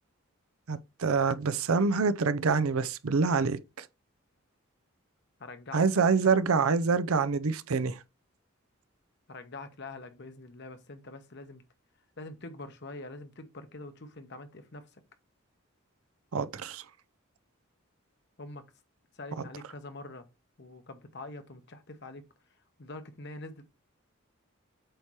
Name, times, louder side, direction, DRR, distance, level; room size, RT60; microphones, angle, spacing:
voice 1, 0.7-3.9 5.7-8.0 16.3-16.8, right 4 dB, 85° right, 0.6 m, -26 dB
voice 2, 5.4-6.3 9.3-11.6 12.2-15.0 18.4-18.6 19.1-20.3 20.6-23.6, left 2 dB, 55° left, 1.0 m, -45 dB
7.8 x 2.9 x 4.7 m
head